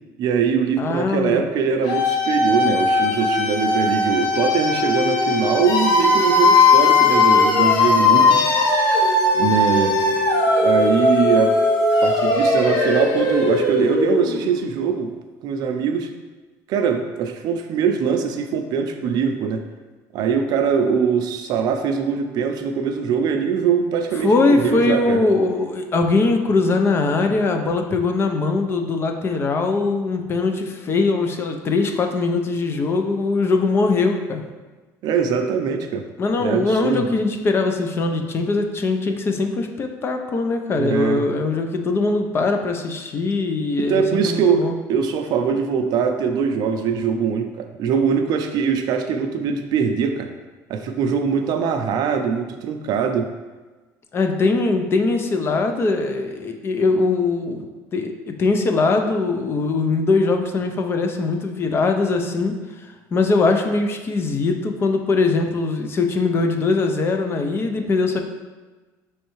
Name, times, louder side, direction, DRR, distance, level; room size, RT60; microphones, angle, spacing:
voice 1, 0.2-8.4 9.3-10.0 10.6-11.6 12.0-15.1 15.4-16.1 16.7-19.7 20.1-25.2 35.0-36.1 36.4-37.1 40.7-41.3 43.8-50.3 50.7-53.3, right 6 dB, 60° right, 6 dB, 0.5 m, -22 dB
voice 2, 0.8-1.5 24.2-34.4 36.2-44.7 54.1-57.7 57.9-68.2, left 3 dB, 30° left, 5 dB, 0.5 m, -21 dB
sound 1, 1.8-14.7, left 3 dB, 60° left, 0.9 m, -18 dB
5.5 x 3.2 x 3.0 m, 1.3 s
cardioid pair, 130°, 8 cm